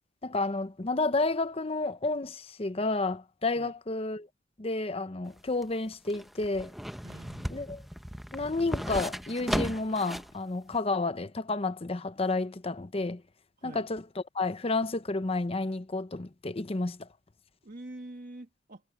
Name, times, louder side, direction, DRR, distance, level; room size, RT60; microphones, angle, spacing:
voice 1, 0.2-4.3 4.6-6.7 7.5-7.8 8.3-13.2 13.6-14.0 14.3-17.1, left 3 dB, 30° left, 0.7 m, -31 dB
sound 1, 5.3-10.4 10.7-10.8, equal, ahead, 0.7 m, -35 dB
voice 2, 7.0-7.6 13.6-13.9 17.6-18.8, right 1 dB, 45° right, 1.6 m, -45 dB
head